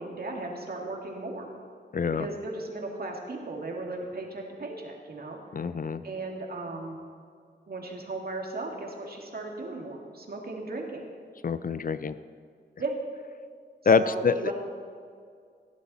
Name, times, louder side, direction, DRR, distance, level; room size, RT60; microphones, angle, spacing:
voice 1, 0.0-1.5 2.1-5.4 6.0-7.0 7.7-11.0 12.8-13.0 14.0-14.5, right 2 dB, 55° right, 0 dB, 2.2 m, -36 dB
voice 2, 1.9-2.3 5.5-6.0 11.4-12.2 13.9-14.5, left 5 dB, 50° left, 14 dB, 0.5 m, -25 dB
17.5 x 11.5 x 4.2 m, 2.1 s
wide cardioid pair, 100°, 18 cm